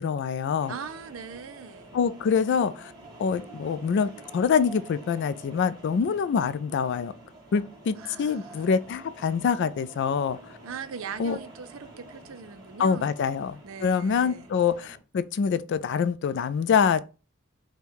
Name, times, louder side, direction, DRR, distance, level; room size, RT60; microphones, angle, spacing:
voice 1, 0.0-0.7 1.9-2.9 3.2-7.1 7.5-10.4 11.2-11.4 12.8-17.0, left 6 dB, 55° left, 0.3 m, -25 dB
sound 1, 0.6-15.0, right 1 dB, 20° right, 2.7 m, -48 dB
voice 2, 0.7-1.9 7.9-8.7 10.6-13.2 13.6-14.5, right 6 dB, 70° right, 0.5 m, -40 dB
5.1 x 2.2 x 4.6 m
head